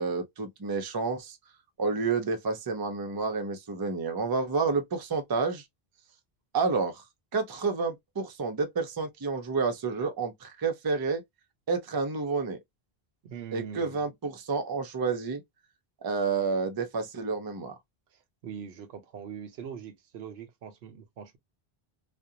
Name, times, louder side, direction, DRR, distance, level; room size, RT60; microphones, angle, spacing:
voice 1, 0.0-1.4 1.8-5.6 6.5-7.0 7.3-11.2 11.7-12.6 13.5-15.4 16.0-17.7, right 4 dB, 30° right, 0.4 m, -29 dB
voice 2, 13.2-14.0 18.1-21.4, right 7 dB, 85° right, 0.9 m, -42 dB
2.4 x 2.1 x 2.7 m
omnidirectional pair, 1.0 m